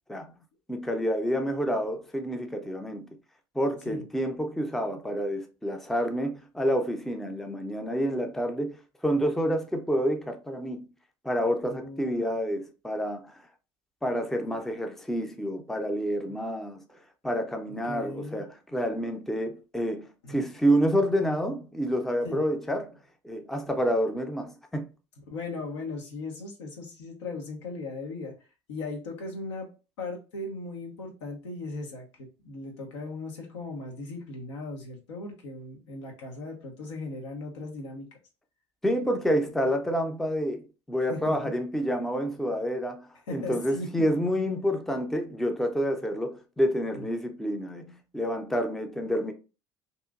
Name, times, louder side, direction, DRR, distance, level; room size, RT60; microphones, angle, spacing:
voice 1, 0.7-3.1 3.5-10.9 11.2-13.4 14.0-16.8 17.2-23.0 23.2-24.9 38.8-49.3, equal, ahead, 0.5 m, -28 dB
voice 2, 11.6-12.2 17.9-18.4 20.2-20.4 22.2-22.4 25.3-28.3 28.7-29.7 30.0-38.1 41.1-41.4 43.3-43.9 46.9-47.0, left 3 dB, 80° left, 0.9 m, -38 dB
2.8 x 2.5 x 2.4 m
hypercardioid pair, 65°, 15 cm